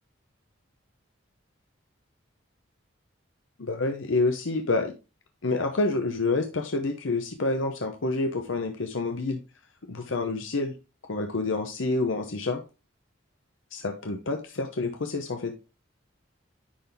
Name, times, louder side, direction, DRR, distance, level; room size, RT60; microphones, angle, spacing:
voice 1, 3.6-4.9 5.4-9.4 9.9-10.7 11.1-12.6 13.7-15.5, left 3 dB, 80° left, 5 dB, 0.8 m, -28 dB
10.0 x 4.0 x 3.4 m, 0.30 s
head